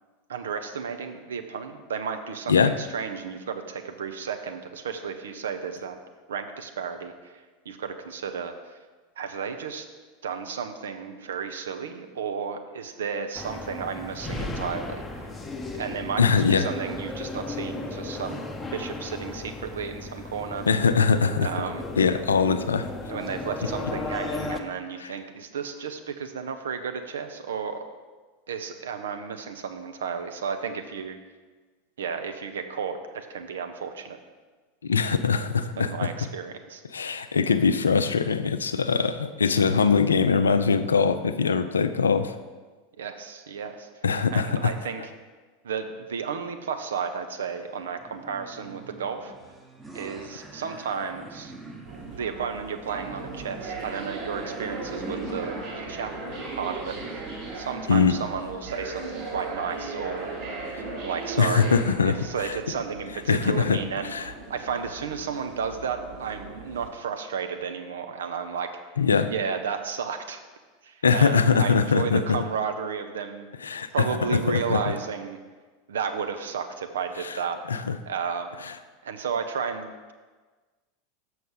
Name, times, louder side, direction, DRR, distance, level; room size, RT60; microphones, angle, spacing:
voice 1, 0.3-6.0 6.3-8.8 9.2-9.9 10.2-15.3 15.7-20.6 21.4-21.8 23.1-27.8 28.5-31.2 32.0-34.2 35.8-36.8 43.0-43.9 44.3-45.0 45.6-49.3 49.9-51.5 52.0-56.1 56.5-57.2 57.5-60.3 61.0-61.7 62.0-68.7 69.2-70.4 70.8-73.5 73.9-75.4 75.9-77.6 78.1-78.5 79.0-80.1, right 6 dB, 70° right, 7 dB, 0.7 m, -33 dB
sound 1, 13.3-24.6, left 2 dB, 15° left, 0.8 m, -35 dB
voice 2, 16.2-16.7 20.7-21.5 22.0-22.9 25.0-25.1 34.8-35.9 36.9-42.3 44.0-44.7 57.9-58.1 61.4-62.2 63.3-63.8 64.1-64.3 69.0-69.3 71.0-72.4 73.6-74.1 74.3-74.8 77.2-77.3 77.7-78.0, left 5 dB, 75° left, 11 dB, 0.4 m, -22 dB
sound 2, 47.3-57.6, right 2 dB, 10° right, 0.9 m, -44 dB
sound 3, 51.8-66.9, right 3 dB, 50° right, 2.1 m, -38 dB
6.5 x 6.2 x 5.4 m, 1.4 s
figure-of-eight pair, 85°, 0 cm